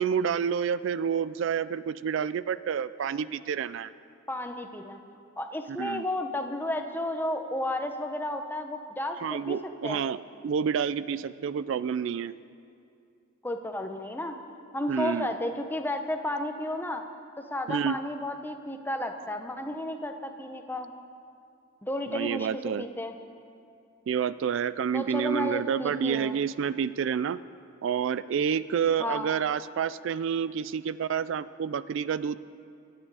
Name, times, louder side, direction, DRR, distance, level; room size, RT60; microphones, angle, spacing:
voice 1, 0.0-3.9 5.7-6.1 9.2-12.3 14.9-15.3 17.7-18.0 22.1-22.8 24.1-27.4 27.8-32.4, right 7 dB, 65° right, 16 dB, 0.3 m, -29 dB
voice 2, 4.3-5.0 5.4-9.6 9.8-10.0 13.4-14.4 14.7-17.0 17.5-20.9 21.8-23.1 24.9-26.4 29.0-29.3, left 1 dB, 10° left, 6 dB, 0.8 m, -32 dB
25.0 x 8.9 x 4.8 m, 2.5 s
head